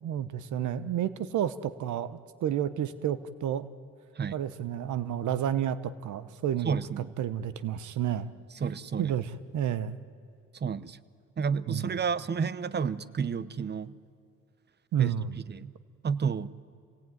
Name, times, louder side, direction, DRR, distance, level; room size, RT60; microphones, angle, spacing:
voice 1, 0.0-3.7 4.3-6.8 7.2-8.3 9.0-10.0 11.7-11.9 14.9-15.4, right 10 dB, 75° right, 15 dB, 1.0 m, -31 dB
voice 2, 6.6-7.1 8.5-9.2 10.5-11.0 11.4-13.9 15.0-15.1 15.5-15.7 16.0-16.5, right 6 dB, 35° right, 18 dB, 0.8 m, -31 dB
27.0 x 18.5 x 9.3 m, 2.5 s
cardioid pair, 90°, 30 cm